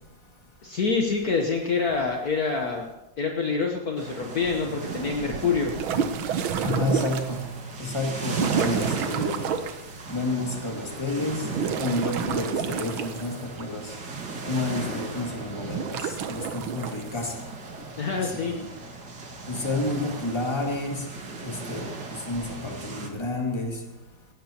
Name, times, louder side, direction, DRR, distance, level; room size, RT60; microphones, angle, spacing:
voice 1, 0.6-2.8 3.2-5.7 18.0-18.6, left 4 dB, 55° left, 1.5 m, -26 dB
sound 1, 4.0-23.1, right 3 dB, 60° right, 2.4 m, -37 dB
sound 2, 4.9-7.5 8.3-9.8 11.3-13.6 15.6-17.0, right 7 dB, 90° right, 1.7 m, -29 dB
voice 2, 6.6-9.5 10.1-11.5 11.7-13.9 14.5-17.4 18.2-18.7 19.5-21.1 21.4-23.8, left 2 dB, 15° left, 2.1 m, -30 dB
18.0 x 17.5 x 3.0 m
omnidirectional pair, 2.1 m